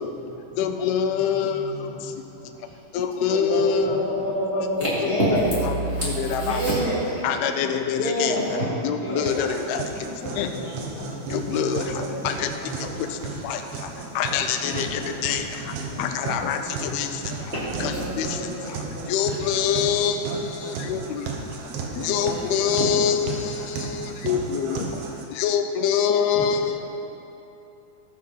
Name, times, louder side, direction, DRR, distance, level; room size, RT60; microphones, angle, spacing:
voice 1, 0.0-0.7 1.0-2.1 2.4-2.8 3.8-4.2 10.0-13.4 14.6-15.2 15.5-16.3 16.8-17.6 19.4-20.2 22.1-22.8 23.2-24.2 24.5-24.6 26.3-26.6, right 1 dB, 45° left, -8 dB, 1.1 m, -40 dB
voice 2, 0.6-1.6 2.9-4.0 6.0-6.6 7.2-8.3 8.8-9.8 10.4-10.5 11.3-12.5 13.4-13.6 14.2-15.4 16.0-16.6 16.9-17.1 17.8-18.3 19.1-20.2 20.6-21.2 22.0-24.9 25.4-26.7, left 7 dB, 85° left, 7 dB, 2.5 m, -25 dB
voice 3, 3.3-7.2 7.9-9.3 11.7-12.2 12.5-12.6 17.5-19.1 21.8-22.5, equal, 20° right, -10 dB, 2.1 m, -27 dB
sound 1, 9.2-25.2, right 4 dB, 75° right, 2.9 m, -35 dB
14.5 x 6.6 x 5.5 m, 2.9 s
omnidirectional pair, 4.4 m